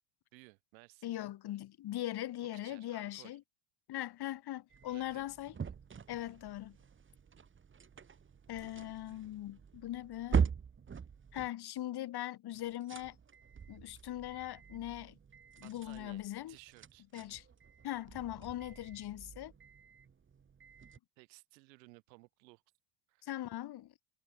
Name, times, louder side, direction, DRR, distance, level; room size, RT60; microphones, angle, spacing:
voice 1, 0.3-1.1 2.6-3.4 4.9-5.3 15.6-17.1 21.2-22.6 23.1-23.3, right 25 dB, 85° right, 6.0 m, -58 dB
voice 2, 1.0-3.4 3.9-5.5 6.1-6.8 8.5-10.5 11.3-13.2 13.7-15.1 15.6-16.5 17.1-17.4 17.8-19.5 23.2-23.9, left 14 dB, 50° left, 1.7 m, -40 dB
sound 1, 4.7-11.5 12.5-21.0, right 6 dB, 25° right, 1.4 m, -42 dB
supercardioid pair, 85°, 50 cm